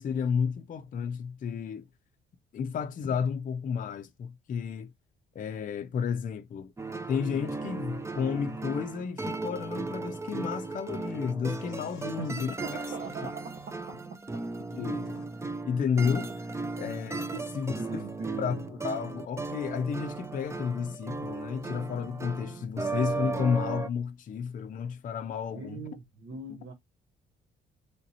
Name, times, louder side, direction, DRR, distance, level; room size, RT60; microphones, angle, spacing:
voice 1, 0.0-1.8 2.5-4.9 5.3-6.7 7.1-12.8 14.7-15.2 15.6-18.1 18.4-18.6 18.8-25.8 26.5-26.6, left 6 dB, 45° left, 0.5 m, -32 dB
sound 1, 6.8-23.9, right 3 dB, 15° right, 0.4 m, -36 dB
sound 2, 10.5-14.0 14.7-15.3, left 10 dB, 90° left, 0.6 m, -57 dB
voice 2, 12.2-14.4 17.3-17.5 17.8-18.7 25.5-26.7, right 5 dB, 65° right, 0.8 m, -40 dB
3.4 x 2.7 x 4.0 m
cardioid pair, 90°, 20 cm